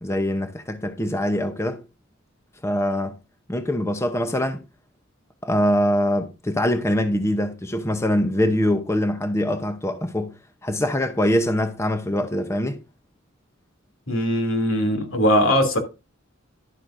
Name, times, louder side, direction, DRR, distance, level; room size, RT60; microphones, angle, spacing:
voice 1, 0.0-1.8 2.6-3.2 3.5-4.6 5.4-10.3 10.6-12.8, left 1 dB, 15° left, 0.7 m, -23 dB
voice 2, 14.1-15.8, equal, 80° left, 2.7 m, -20 dB
11.5 x 8.5 x 2.5 m
head